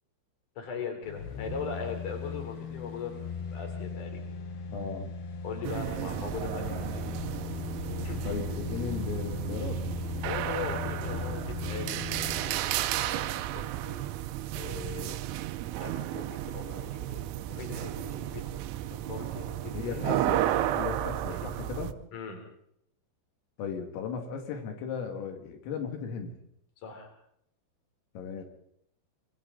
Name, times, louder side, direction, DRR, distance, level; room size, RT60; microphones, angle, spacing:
voice 1, 0.6-3.1 3.5-4.2 5.4-7.0 8.0-8.3 10.2-13.2 13.5-14.2 14.5-15.2 15.8-20.2 21.4-21.5 22.1-22.4 26.8-27.1, left 5 dB, 40° left, 4 dB, 4.9 m, -40 dB
sound 1, 1.0-12.6 13.0-13.1, left 5 dB, 60° left, 3.5 m, -38 dB
voice 2, 4.7-5.1 8.2-9.8 19.7-20.5 20.7-22.0 23.6-26.3 28.2-28.4, left 6 dB, 85° left, 4 dB, 4.9 m, -36 dB
sound 2, 5.6-21.9, right 13 dB, 85° right, 3.5 m, -33 dB
25.5 x 25.5 x 4.1 m, 0.72 s
omnidirectional pair, 5.8 m